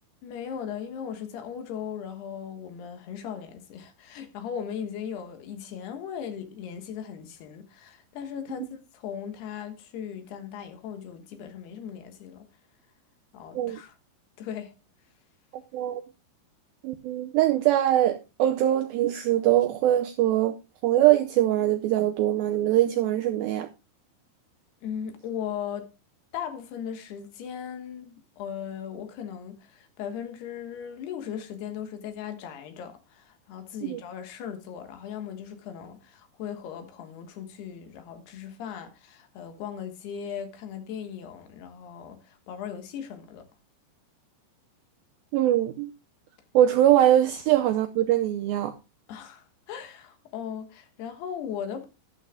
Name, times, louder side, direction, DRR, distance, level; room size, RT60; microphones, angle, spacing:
voice 1, 0.2-12.5 13.3-14.0 14.4-14.7 24.8-25.9 26.3-43.5 49.1-51.9, left 8 dB, 75° left, 3.2 m, -38 dB
voice 2, 16.8-20.6 20.8-23.7 33.8-34.0 45.3-45.9 46.5-48.8, right 13 dB, 90° right, 2.1 m, -22 dB
12.5 x 12.0 x 2.2 m
omnidirectional pair, 5.0 m